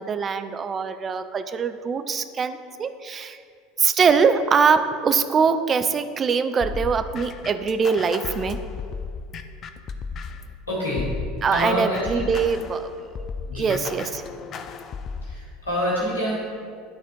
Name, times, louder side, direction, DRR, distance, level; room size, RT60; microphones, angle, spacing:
voice 1, 0.0-3.4 3.8-8.6 11.4-12.9 13.5-14.2, right 5 dB, 30° right, 10 dB, 0.5 m, -22 dB
sound 1, 6.6-10.5 11.0-15.3, left 5 dB, 40° left, 0.5 m, -34 dB
voice 2, 10.7-11.1 11.5-12.3 13.5-13.7 15.2-16.4, equal, 85° left, -6 dB, 2.1 m, -26 dB
10.5 x 4.2 x 4.5 m, 2.2 s
figure-of-eight pair, 75°, 0 cm